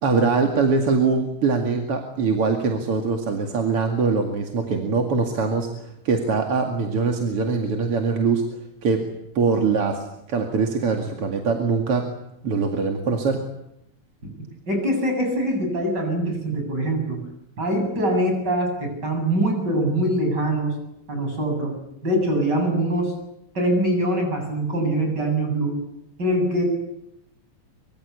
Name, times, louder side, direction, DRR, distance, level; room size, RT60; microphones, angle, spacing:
voice 1, 0.0-9.0 9.3-12.1 12.4-13.4, right 4 dB, 50° right, 3 dB, 3.0 m, -23 dB
voice 2, 14.7-17.2 17.6-20.7 21.1-21.7 22.0-23.1 23.6-25.8 26.2-26.6, right 1 dB, 30° right, 4 dB, 8.7 m, -23 dB
24.5 x 24.5 x 8.5 m, 0.79 s
omnidirectional pair, 3.5 m